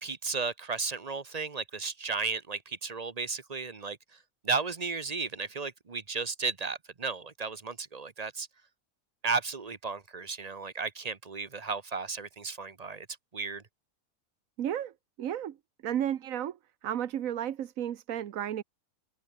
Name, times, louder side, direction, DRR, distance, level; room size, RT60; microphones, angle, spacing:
voice 1, 0.0-4.0 4.4-8.5 9.2-13.1 13.3-13.6, right 4 dB, 30° right, 1.0 m, -34 dB
voice 2, 14.6-14.9 15.2-15.6 15.8-16.6 16.8-18.6, right 10 dB, 75° right, 1.3 m, -32 dB
omnidirectional pair, 1.5 m